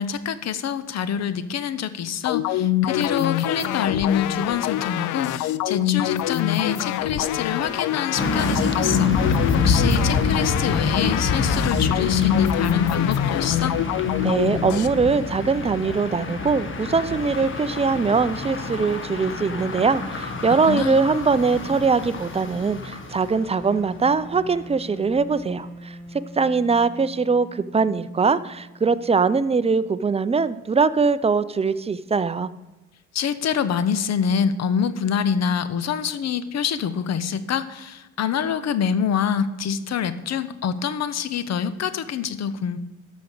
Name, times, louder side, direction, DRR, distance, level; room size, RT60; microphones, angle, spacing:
voice 1, 0.0-13.8 20.7-21.0 33.1-42.8, left 7 dB, 60° left, 13 dB, 0.8 m, -26 dB
sound 1, 2.3-14.9, left 13 dB, 90° left, 0.5 m, -25 dB
sound 2, 8.2-24.0 24.3-24.5, left 3 dB, 40° left, 1.5 m, -27 dB
voice 2, 14.2-26.0 26.4-32.5, right 4 dB, 20° right, 14 dB, 0.5 m, -22 dB
Wind instrument woodwind instrument, 23.5-30.4, equal, 5° left, 3.5 m, -42 dB
13.0 x 5.2 x 6.6 m, 1.0 s
cardioid pair, 90°, 30 cm